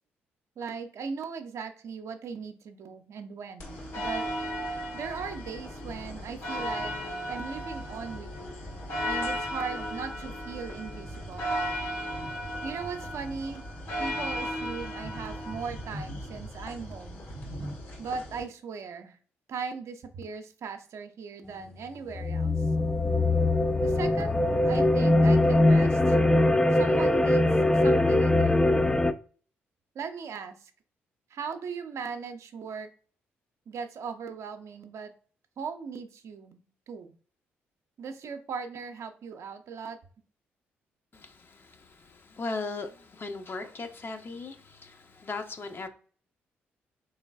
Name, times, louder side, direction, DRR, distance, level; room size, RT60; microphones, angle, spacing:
voice 1, 0.6-4.2 4.9-6.9 7.3-8.5 9.0-11.5 12.6-13.7 14.0-17.2 18.0-19.2 19.5-22.7 23.8-26.2 26.7-28.7 29.9-30.7 31.3-32.9 33.7-35.1 35.6-37.1 38.0-40.0, right 5 dB, 55° right, 0.5 m, -38 dB
sound 1, 3.6-18.4, equal, 65° left, 1.7 m, -35 dB
sound 2, 22.1-29.1, left 2 dB, 10° left, 0.3 m, -22 dB
voice 2, 41.1-45.9, left 3 dB, 40° left, 0.7 m, -38 dB
3.8 x 3.3 x 2.3 m
hypercardioid pair, 40°, 6 cm